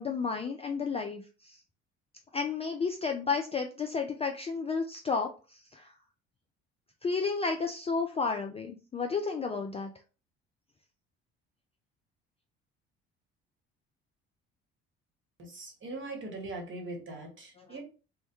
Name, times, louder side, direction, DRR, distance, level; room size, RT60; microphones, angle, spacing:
voice 1, 0.0-1.6 2.3-5.9 7.0-9.9, left 5 dB, 20° left, 3 dB, 0.3 m, -32 dB
voice 2, 15.4-17.8, right 2 dB, 40° right, 2 dB, 1.1 m, -41 dB
2.1 x 2.1 x 2.9 m, 0.34 s
hypercardioid pair, 60°, 32 cm